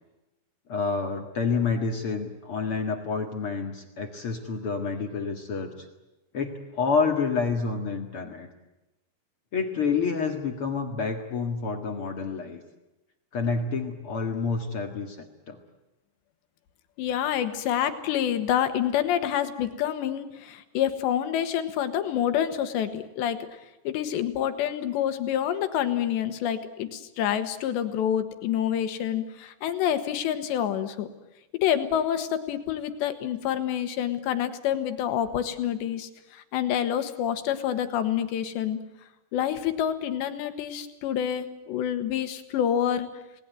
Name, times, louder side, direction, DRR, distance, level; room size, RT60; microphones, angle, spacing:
voice 1, 0.7-5.7 6.3-8.5 9.5-12.6 13.3-15.6, left 5 dB, 50° left, 4 dB, 1.7 m, -28 dB
voice 2, 17.0-23.6 23.9-31.1 31.6-38.8 39.3-43.1, left 10 dB, 85° left, 9 dB, 3.8 m, -27 dB
28.5 x 19.5 x 9.4 m, 1.0 s
omnidirectional pair, 5.0 m